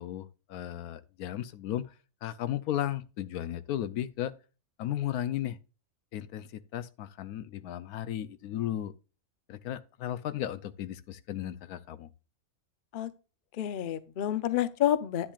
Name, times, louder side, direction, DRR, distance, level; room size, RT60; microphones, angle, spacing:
voice 1, 0.0-1.9 2.2-4.3 4.8-5.6 6.1-8.9 9.5-12.1, left 12 dB, 80° left, 1.1 m, -35 dB
voice 2, 13.5-15.3, left 11 dB, 55° left, 0.5 m, -29 dB
10.0 x 9.9 x 2.4 m
omnidirectional pair, 1.6 m